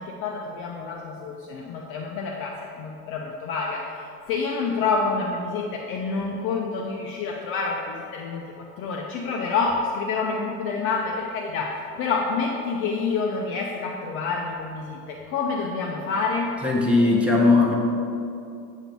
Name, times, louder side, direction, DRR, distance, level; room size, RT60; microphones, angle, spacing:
voice 1, 0.0-16.6, left 4 dB, 30° left, 0 dB, 0.4 m, -28 dB
voice 2, 16.6-17.7, left 3 dB, 5° right, -3 dB, 0.7 m, -18 dB
8.0 x 3.0 x 5.2 m, 2.6 s
hypercardioid pair, 115°, 44 cm